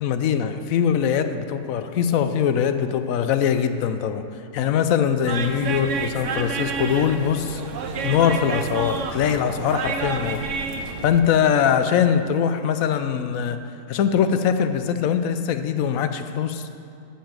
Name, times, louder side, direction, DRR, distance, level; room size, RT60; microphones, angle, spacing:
voice 1, 0.0-4.2 4.5-7.6 8.0-10.4 11.0-13.6 13.9-16.6, left 8 dB, 70° left, 9 dB, 0.9 m, -22 dB
sound 1, 5.3-11.2, right 5 dB, 60° right, 0.9 m, -29 dB
9.9 x 5.8 x 7.4 m, 2.5 s
omnidirectional pair, 1.6 m